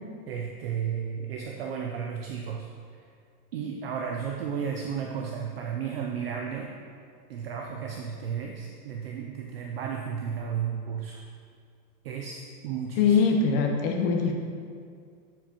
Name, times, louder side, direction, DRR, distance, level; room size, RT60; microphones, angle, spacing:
voice 1, 0.3-2.7 3.5-6.7 7.3-11.2 12.0-13.2, right 7 dB, 45° right, 1 dB, 0.4 m, -33 dB
voice 2, 13.0-14.3, left 5 dB, 35° left, 2 dB, 0.8 m, -22 dB
8.0 x 7.2 x 2.8 m, 2.2 s
supercardioid pair, 165°, 46 cm